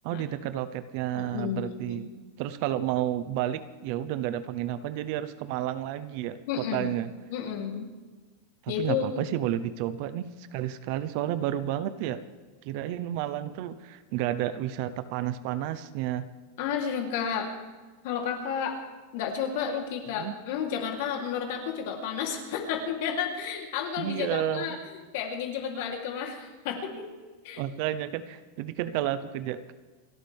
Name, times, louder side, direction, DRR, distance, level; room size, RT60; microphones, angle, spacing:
voice 1, 0.0-2.1 2.4-7.1 8.6-12.2 12.6-16.3 20.2-20.3 24.0-24.8 27.5-29.7, right 12 dB, 45° right, 13 dB, 0.8 m, -31 dB
voice 2, 1.2-2.0 6.5-6.9 7.3-7.9 8.7-9.3 16.6-17.5 18.0-18.8 19.1-24.8 25.1-27.1 27.4-27.6, left 7 dB, 55° left, 2 dB, 3.3 m, -31 dB
29.0 x 12.5 x 3.6 m, 1.4 s
supercardioid pair, 170°, 0 cm